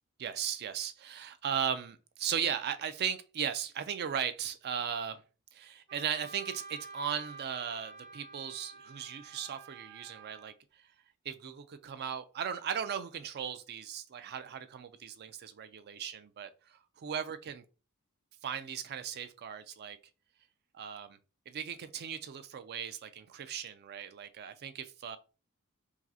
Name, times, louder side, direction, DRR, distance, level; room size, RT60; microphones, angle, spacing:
voice 1, 0.2-5.2 5.5-10.5 10.8-10.9 11.3-17.6 18.4-20.0 20.7-21.2 21.5-25.2, right 8 dB, 45° right, 0.4 m, -37 dB
Wind instrument woodwind instrument, 5.9-10.5, right 4 dB, 70° right, 1.8 m, -49 dB
4.7 x 2.0 x 2.7 m
head